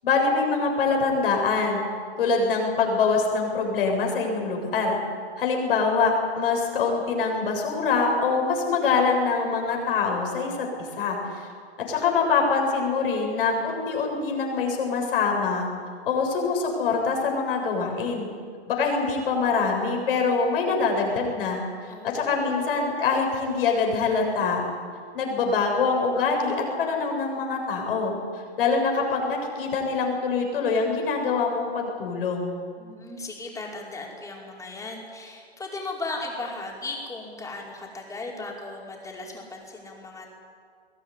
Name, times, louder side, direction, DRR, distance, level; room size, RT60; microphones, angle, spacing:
voice 1, 0.0-1.8 2.2-5.0 5.4-11.5 11.8-15.7 16.1-18.3 18.7-24.6 25.1-32.6, left 4 dB, 60° left, 1 dB, 7.4 m, -24 dB
voice 2, 21.9-22.5 32.8-40.3, left 2 dB, 10° left, -1 dB, 5.0 m, -37 dB
22.0 x 17.0 x 10.0 m, 2.1 s
hypercardioid pair, 130°, 32 cm